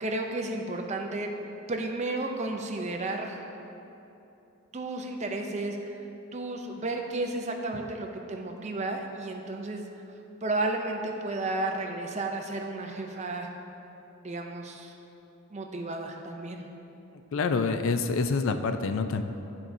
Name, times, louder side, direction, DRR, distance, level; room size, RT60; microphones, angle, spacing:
voice 1, 0.0-1.3 1.7-3.5 4.7-6.0 6.3-9.9 10.4-13.5 14.2-15.0 15.5-16.7, right 2 dB, 30° right, 3 dB, 0.5 m, -32 dB
voice 2, 17.3-19.2, left 4 dB, 65° left, 8 dB, 0.4 m, -27 dB
12.5 x 4.5 x 2.7 m, 2.9 s
head